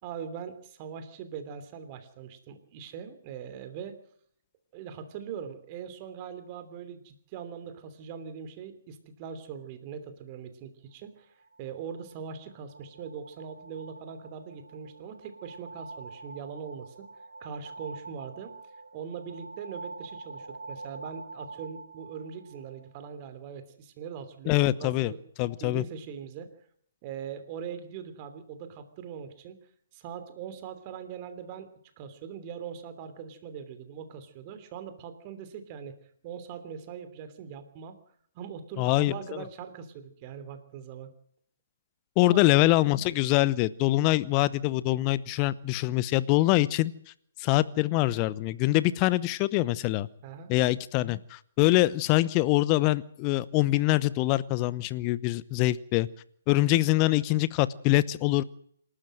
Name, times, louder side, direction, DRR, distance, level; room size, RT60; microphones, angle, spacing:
voice 1, 0.0-4.0 4.7-17.1 17.4-25.2 25.6-26.5 27.0-29.6 29.9-31.7 32.0-35.9 36.2-38.0 38.3-41.1 42.2-42.4 50.2-50.5, right 7 dB, 30° right, 10 dB, 3.1 m, -41 dB
sound 1, 11.4-23.1, right 3 dB, 80° right, 1.9 m, -46 dB
voice 2, 24.5-25.1 25.4-25.8 38.8-39.1 42.2-46.9 47.4-50.1 50.5-56.1 56.5-58.4, left 17 dB, 25° left, 18 dB, 0.9 m, -24 dB
27.0 x 13.0 x 7.7 m, 0.68 s
figure-of-eight pair, 135°, 0 cm